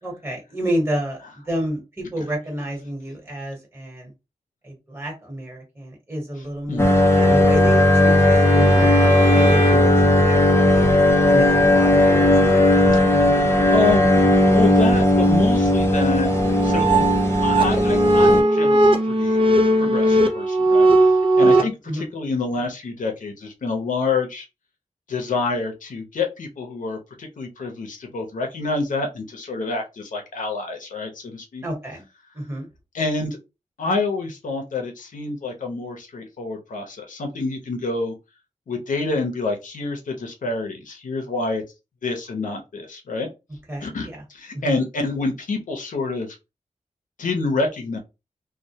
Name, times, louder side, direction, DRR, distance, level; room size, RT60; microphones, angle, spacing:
voice 1, 0.0-4.1 4.6-10.9 11.3-12.7 13.0-13.3 21.4-22.1 31.6-32.0 32.3-32.7 43.7-44.2 44.5-44.8, right 1 dB, 20° right, -2 dB, 1.2 m, -30 dB
sound 1, 6.8-18.4, left 1 dB, 20° left, 0.5 m, -16 dB
Bowed string instrument, 7.0-10.0, equal, 50° left, 0.9 m, -32 dB
voice 2, 13.7-14.1 14.5-16.3 16.6-16.9 17.4-19.4 19.8-24.5 25.1-31.6 32.9-33.4 33.8-38.1 38.7-41.6 42.0-43.3 43.8-46.4 47.2-48.0, left 3 dB, 80° left, 3 dB, 0.6 m, -27 dB
sound 2, 16.3-21.6, right 1 dB, 40° right, 0.4 m, -17 dB
2.1 x 2.1 x 2.7 m, 0.26 s
wide cardioid pair, 80°, 13 cm